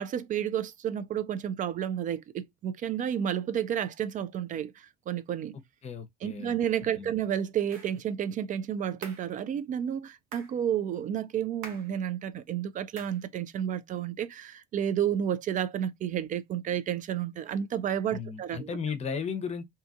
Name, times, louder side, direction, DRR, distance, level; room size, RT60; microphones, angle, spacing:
voice 1, 0.0-5.6 6.2-18.8, right 9 dB, 45° right, 0.4 m, -31 dB
voice 2, 5.8-6.6 6.9-7.1 18.1-19.6, left 6 dB, 35° left, 0.7 m, -35 dB
sound 1, 7.7-8.0 9.0-9.3 10.3-10.6 11.6-11.9 13.0-13.2, right 4 dB, 80° right, 0.9 m, -45 dB
2.7 x 2.4 x 2.4 m
hypercardioid pair, 60°, 19 cm